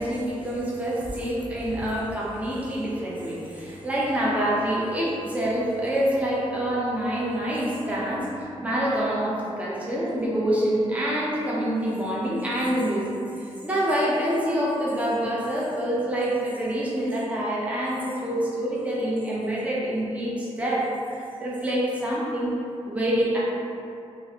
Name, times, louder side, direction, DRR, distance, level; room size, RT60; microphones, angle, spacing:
voice 1, 0.0-22.5 22.9-23.4, right 1 dB, 10° right, -6 dB, 0.6 m, -26 dB
2.9 x 2.4 x 2.7 m, 2.6 s
cardioid pair, 70°, 12 cm